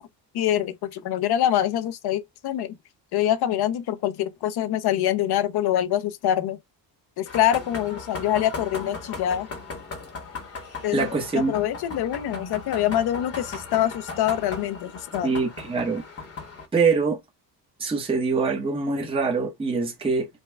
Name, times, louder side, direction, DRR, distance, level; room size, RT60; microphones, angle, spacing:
voice 1, 0.3-2.7 3.1-6.6 7.2-9.5 10.8-15.3, left 11 dB, 60° left, 0.7 m, -25 dB
sound 1, 7.3-16.7, left 4 dB, 35° left, 1.1 m, -37 dB
voice 2, 10.9-11.5 15.2-16.0 16.7-17.2 17.8-20.3, right 4 dB, 15° right, 0.9 m, -24 dB
5.5 x 2.2 x 3.3 m
cardioid pair, 175°, 43 cm